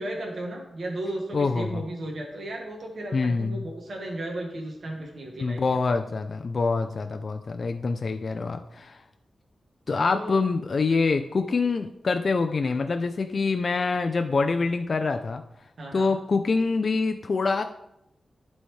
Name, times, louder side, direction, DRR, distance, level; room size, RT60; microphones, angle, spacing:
voice 1, 0.0-5.8 10.1-10.3 15.8-16.1, right 1 dB, 65° right, 0 dB, 1.5 m, -35 dB
voice 2, 1.3-1.8 3.1-3.6 5.4-9.0 9.9-15.4 15.9-17.6, left 4 dB, 55° left, 6 dB, 0.4 m, -25 dB
11.5 x 4.2 x 3.2 m, 0.81 s
cardioid pair, 70°, 0 cm